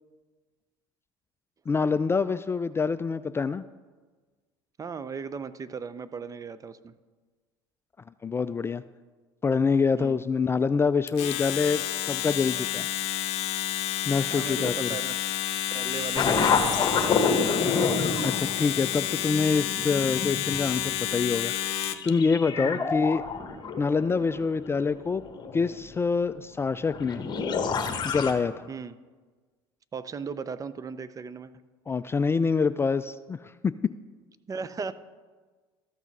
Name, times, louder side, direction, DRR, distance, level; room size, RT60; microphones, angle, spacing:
voice 1, 1.7-3.6 8.2-8.8 9.4-12.9 14.1-14.9 18.2-21.5 22.0-23.2 23.8-25.2 25.5-27.2 28.0-28.7 31.9-33.7, left 5 dB, 20° left, 13 dB, 0.3 m, -26 dB
voice 2, 4.8-6.9 10.0-10.2 14.3-15.2 15.7-17.5 22.6-22.9 28.7-29.0 29.9-31.5 34.5-34.9, right 5 dB, 30° right, 14 dB, 0.6 m, -37 dB
Domestic sounds home sounds, 11.1-22.1, left 12 dB, 60° left, 0.7 m, -30 dB
sound 1, 16.2-21.1 21.4-25.9 26.8-28.3, left 5 dB, 35° left, 1.4 m, -29 dB
13.0 x 6.1 x 5.3 m, 1.4 s
hypercardioid pair, 80°, 12 cm